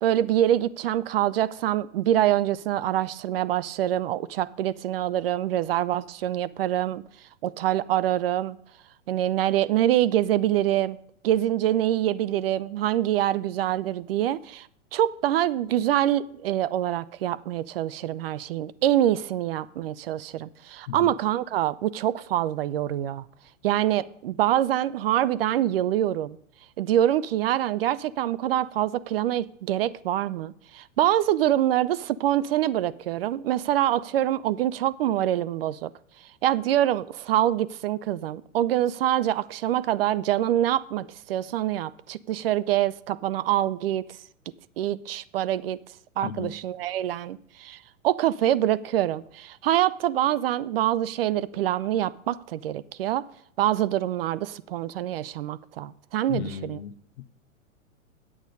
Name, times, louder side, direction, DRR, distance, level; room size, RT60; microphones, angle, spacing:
voice 1, 0.0-7.0 7.4-8.6 9.1-11.0 11.2-14.7 14.9-23.2 23.6-26.4 26.8-35.9 36.4-44.0 44.8-45.8 46.2-47.8 48.0-53.2 53.6-56.8, right 12 dB, 50° right, 0.4 m, -25 dB
voice 2, 46.2-46.5 56.3-57.3, left 9 dB, 55° left, 0.7 m, -35 dB
8.6 x 7.8 x 5.3 m
figure-of-eight pair, 105°, 40 cm